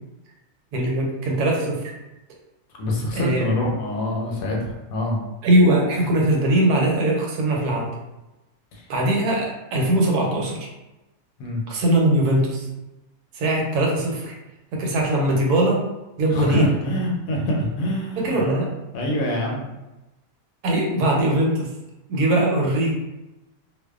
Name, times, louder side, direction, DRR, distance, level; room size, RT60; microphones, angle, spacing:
voice 1, 0.7-1.8 3.1-3.5 5.4-7.9 8.9-10.7 11.7-12.7 13.3-14.4 14.7-15.8 16.2-16.7 18.2-18.7 20.6-21.7 22.1-22.9, right 1 dB, 90° right, -1 dB, 1.2 m, -21 dB
voice 2, 2.8-5.2 8.7-8.8 11.4-11.6 16.3-18.4 18.9-19.7, left 1 dB, 70° left, -1 dB, 1.0 m, -25 dB
2.6 x 2.1 x 2.3 m, 1.0 s
omnidirectional pair, 1.6 m